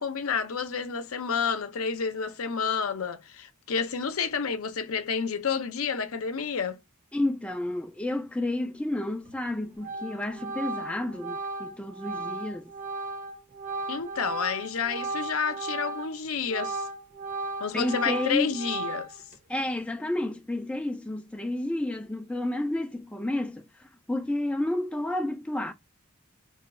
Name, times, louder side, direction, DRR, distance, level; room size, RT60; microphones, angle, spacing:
voice 1, 0.0-6.8 13.9-16.9 17.6-19.1, left 6 dB, 70° left, 0.6 m, -30 dB
voice 2, 7.1-12.7 17.7-18.5 19.5-25.7, left 1 dB, 5° left, 0.3 m, -31 dB
Organ, 9.3-9.5 9.8-16.2 16.4-19.3, right 3 dB, 35° right, 0.7 m, -35 dB
3.0 x 2.3 x 4.0 m
head